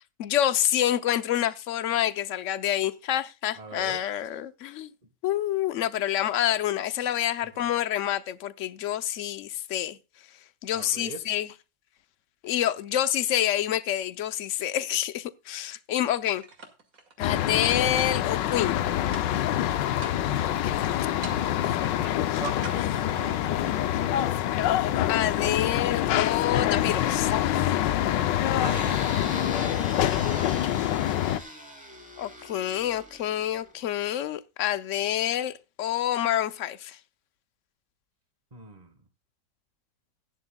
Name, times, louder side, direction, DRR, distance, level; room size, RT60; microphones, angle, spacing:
voice 1, 0.2-4.9 5.2-10.0 10.6-11.5 12.4-16.4 17.2-18.8 21.0-21.1 22.3-22.4 25.1-27.3 30.7-30.9 32.2-37.0, left 11 dB, 60° left, 0.9 m, -27 dB
voice 2, 3.5-4.0 7.5-7.7 10.7-11.2 20.0-20.3 21.2-24.5 28.6-29.0 29.5-30.0 30.3-30.7 38.5-39.0, right 4 dB, 25° right, 1.5 m, -42 dB
sound 1, 16.3-17.2 18.0-18.8 19.1-19.6 20.0-20.5 21.2-21.8 22.6-23.5, right 3 dB, 50° right, 2.5 m, -45 dB
sound 2, 17.2-31.4, left 12 dB, 85° left, 1.3 m, -26 dB
sound 3, 28.6-34.0, right 1 dB, 5° right, 3.0 m, -41 dB
16.0 x 10.5 x 2.3 m
omnidirectional pair, 1.9 m